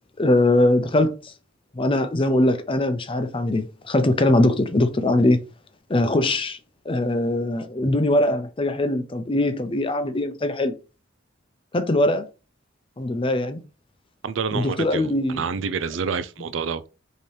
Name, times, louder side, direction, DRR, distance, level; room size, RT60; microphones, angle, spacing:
voice 1, 0.2-1.1 1.7-5.4 5.9-6.6 6.9-10.7 11.7-12.3 13.0-13.6 14.5-15.5, left 1 dB, 30° left, 0.6 m, -21 dB
voice 2, 14.2-16.9, right 5 dB, 80° right, 0.5 m, -28 dB
5.3 x 3.0 x 3.3 m
head